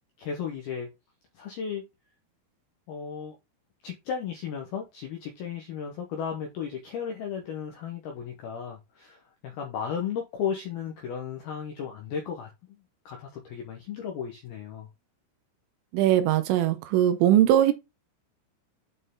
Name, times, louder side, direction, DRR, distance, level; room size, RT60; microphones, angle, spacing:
voice 1, 0.2-0.9 1.4-1.8 2.9-3.4 3.8-12.5 13.1-14.9, left 7 dB, 80° left, 2.2 m, -35 dB
voice 2, 15.9-17.7, right 12 dB, 85° right, 3.3 m, -20 dB
9.0 x 4.5 x 3.6 m
omnidirectional pair, 5.9 m